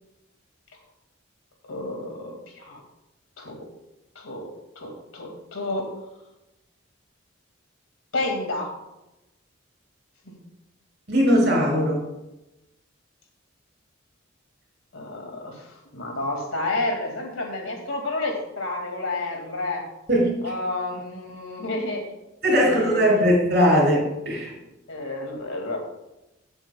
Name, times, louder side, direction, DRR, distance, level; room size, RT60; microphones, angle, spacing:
voice 1, 1.7-2.8 3.4-3.7 4.2-4.5 4.8-5.9 8.1-8.7 10.3-10.4 14.9-15.7 15.9-19.9 20.4-22.0 22.5-23.4 24.9-25.8, left 2 dB, 90° left, 2 dB, 2.2 m, -30 dB
voice 2, 11.1-12.0 20.1-20.3 22.4-24.5, equal, 55° right, -2 dB, 3.7 m, -20 dB
14.5 x 7.9 x 2.3 m, 0.95 s
head